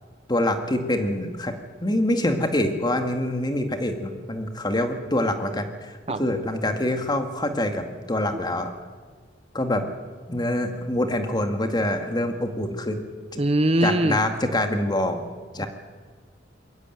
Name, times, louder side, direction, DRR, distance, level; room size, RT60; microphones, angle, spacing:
voice 1, 0.3-1.5 1.8-8.7 9.5-9.8 10.3-13.0 13.3-13.4 13.8-15.2 15.5-15.7, left 1 dB, 25° left, 6 dB, 2.0 m, -25 dB
voice 2, 13.4-14.2, right 1 dB, 35° right, 12 dB, 0.8 m, -21 dB
22.0 x 15.0 x 9.3 m, 1.5 s
head